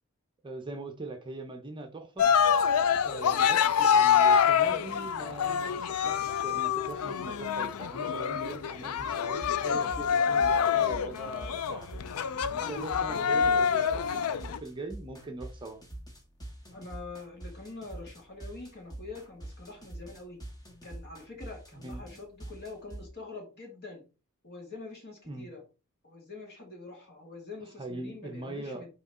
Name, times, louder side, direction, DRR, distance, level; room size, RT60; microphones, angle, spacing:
voice 1, 0.4-2.3 3.0-12.1 12.5-14.2 14.5-15.8 21.8-22.2 25.2-25.5 27.8-28.9, right 2 dB, 20° right, 0.7 m, -41 dB
Cheering, 2.2-14.6, left 7 dB, 80° left, 0.4 m, -26 dB
sound 1, 9.0-23.1, right 1 dB, 20° left, 1.4 m, -44 dB
voice 2, 12.5-14.3 16.7-20.4 20.8-24.0 24.4-25.6 26.0-28.9, left 3 dB, 50° left, 2.3 m, -45 dB
6.1 x 3.7 x 4.2 m
head